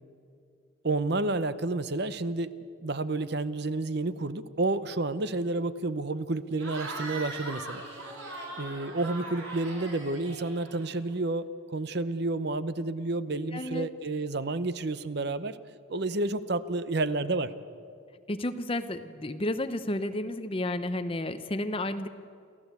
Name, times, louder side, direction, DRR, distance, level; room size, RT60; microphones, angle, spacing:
voice 1, 0.8-2.5 2.8-7.9 8.6-15.6 15.9-17.5, right 2 dB, 55° right, 14 dB, 0.7 m, -30 dB
Cheering / Crowd, 6.5-11.2, right 2 dB, 80° right, 4.8 m, -40 dB
voice 2, 13.5-13.9 18.3-22.1, left 1 dB, 25° left, 10 dB, 0.8 m, -32 dB
29.5 x 13.5 x 8.2 m, 2.3 s
head